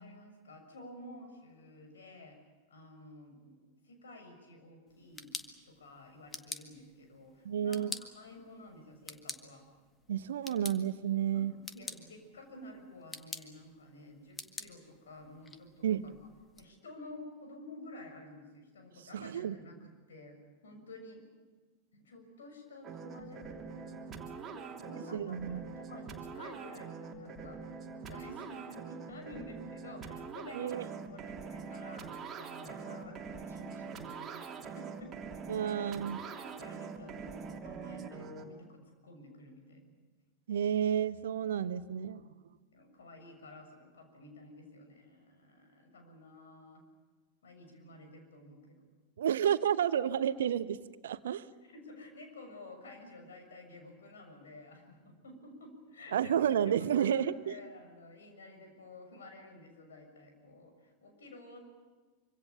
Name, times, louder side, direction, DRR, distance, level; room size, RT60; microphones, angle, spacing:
voice 1, 0.0-2.4 2.7-5.3 5.6-9.6 11.3-16.2 16.6-20.4 20.6-21.2 21.9-27.6 28.1-32.1 32.4-34.4 34.7-35.1 35.7-39.8 42.7-46.8 47.4-48.8 51.6-56.5 56.8-61.6, left 1 dB, 65° left, 4 dB, 6.9 m, -52 dB
sound 1, 4.9-16.6, left 3 dB, 15° left, 1.8 m, -48 dB
voice 2, 7.4-7.9 10.1-11.5 15.8-16.0 19.1-19.5 25.1-25.6 30.5-30.8 35.5-36.2 40.5-42.2 49.2-50.8 51.0-51.4 56.1-57.5, right 9 dB, 60° right, 14 dB, 1.0 m, -31 dB
sound 2, 22.8-38.4, right 5 dB, 25° right, 3.0 m, -44 dB
26.0 x 25.5 x 7.0 m, 1.3 s
figure-of-eight pair, 90°, 0 cm